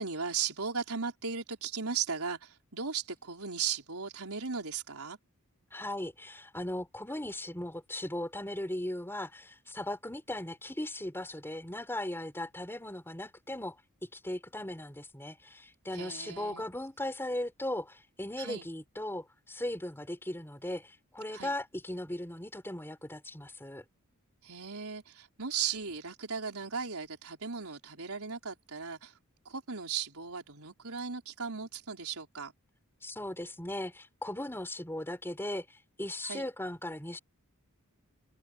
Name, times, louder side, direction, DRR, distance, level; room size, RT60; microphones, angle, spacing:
voice 1, 0.0-5.2 15.9-16.6 18.4-18.7 21.3-21.6 24.4-29.1 29.5-32.5 36.2-36.5, right 6 dB, 85° right, 4.2 m, -37 dB
voice 2, 5.7-23.8 33.0-37.2, left 1 dB, 10° left, 4.1 m, -38 dB
head